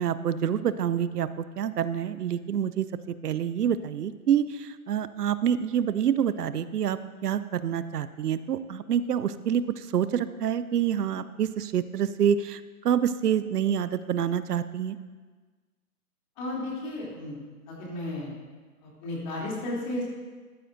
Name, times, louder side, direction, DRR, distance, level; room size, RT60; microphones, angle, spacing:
voice 1, 0.0-2.9 3.2-15.0, right 9 dB, 90° right, 14 dB, 0.7 m, -27 dB
voice 2, 16.4-17.4 17.7-18.3 19.0-20.0, left 1 dB, 30° left, -4 dB, 3.1 m, -33 dB
14.0 x 10.0 x 2.6 m, 1.4 s
hypercardioid pair, 160°, 45 cm